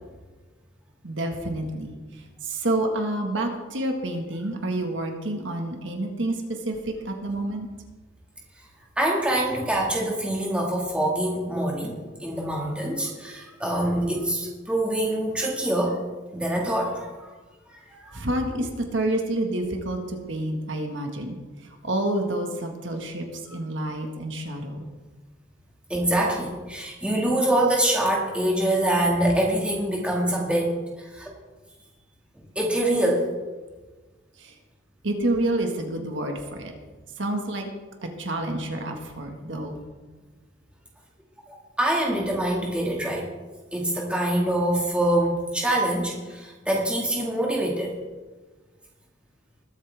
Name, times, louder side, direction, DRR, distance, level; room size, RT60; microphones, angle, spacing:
voice 1, 1.0-1.9 2.4-6.3 6.6-7.7 18.1-21.4 21.8-23.3 23.5-24.9 34.4-34.5 35.0-36.7 37.2-37.7 38.2-39.8, right 1 dB, 70° right, 3 dB, 1.7 m, -28 dB
voice 2, 9.0-16.0 16.3-17.3 17.7-18.2 25.9-31.3 32.6-33.3 41.5-43.3 43.7-48.0, right 1 dB, 5° right, -2 dB, 2.0 m, -25 dB
20.5 x 8.7 x 3.5 m, 1.3 s
head